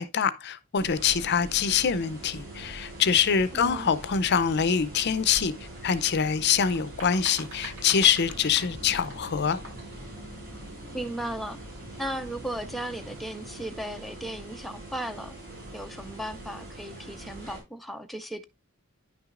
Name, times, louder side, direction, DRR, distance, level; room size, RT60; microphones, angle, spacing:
voice 1, 0.0-5.5 5.8-9.6, left 7 dB, 50° left, 0.5 m, -25 dB
sound 1, 0.8-17.6, right 1 dB, 45° right, 5.2 m, -43 dB
voice 2, 3.5-3.9 10.9-11.6 12.0-15.3 15.7-18.4, right 1 dB, ahead, 0.4 m, -36 dB
sound 2, 6.3-10.0, right 1 dB, 75° right, 4.5 m, -44 dB
sound 3, 8.2-13.3, left 1 dB, 25° left, 2.1 m, -49 dB
10.0 x 6.0 x 2.5 m
head